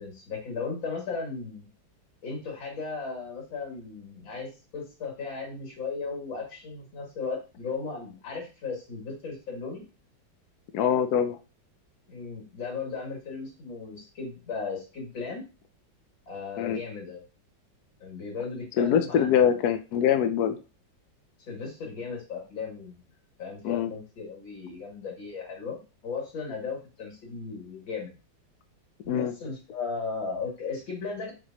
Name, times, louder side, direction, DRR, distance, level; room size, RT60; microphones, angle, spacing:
voice 1, 0.0-1.6 2.2-9.8 12.1-15.4 16.3-17.2 18.0-19.6 21.5-23.0 23.4-28.1 29.0-31.3, left 4 dB, 85° left, -1 dB, 3.2 m, -36 dB
voice 2, 10.7-11.4 16.6-16.8 18.8-20.6 23.6-23.9 29.1-29.3, left 8 dB, 65° left, 8 dB, 1.1 m, -24 dB
7.6 x 4.7 x 2.9 m, 0.32 s
omnidirectional pair, 2.1 m